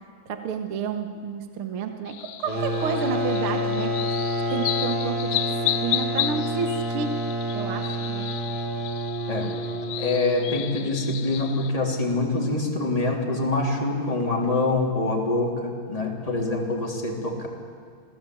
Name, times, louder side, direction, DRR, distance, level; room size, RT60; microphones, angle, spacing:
voice 1, 0.3-4.2 4.5-5.4 5.6-7.2 7.5-8.3, right 6 dB, 50° right, 6 dB, 1.8 m, -30 dB
sound 1, 2.1-11.7, left 13 dB, 80° left, 2.4 m, -33 dB
sound 2, 2.4-10.9, equal, 20° right, 2.3 m, -28 dB
voice 2, 10.0-17.5, left 2 dB, 10° left, -1 dB, 3.0 m, -25 dB
26.5 x 18.0 x 8.6 m, 2.2 s
omnidirectional pair, 3.9 m